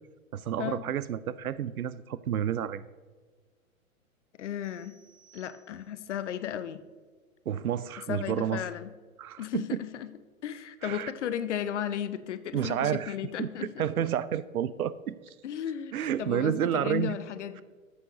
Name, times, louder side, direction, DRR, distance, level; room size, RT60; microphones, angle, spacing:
voice 1, 0.3-2.8 7.5-8.6 9.2-9.8 10.8-11.1 12.5-15.3 15.9-17.2, right 10 dB, 80° right, 17 dB, 0.6 m, -30 dB
voice 2, 4.4-5.0 5.3-6.8 8.1-8.9 9.4-10.1 10.4-13.9 15.4-17.6, left 10 dB, 55° left, 13 dB, 0.7 m, -35 dB
sound 1, 4.6-6.2, right 7 dB, 30° right, 2.0 m, -61 dB
13.5 x 8.3 x 2.9 m, 1.4 s
figure-of-eight pair, 115°, 43 cm